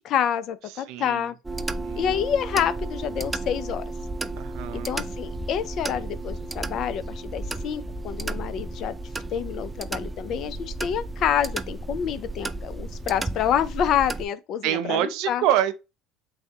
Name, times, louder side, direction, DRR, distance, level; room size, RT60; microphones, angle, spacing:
voice 1, 0.0-1.4 2.0-3.8 4.7-9.0 9.3-15.4, left 9 dB, 55° left, 0.5 m, -27 dB
voice 2, 0.7-1.3 1.7-2.2 4.4-5.0 14.6-15.7, right 12 dB, 70° right, 0.5 m, -26 dB
sound 1, 1.4-14.3, right 2 dB, 15° right, 0.4 m, -33 dB
3.4 x 2.7 x 3.5 m
supercardioid pair, 85°, 0 cm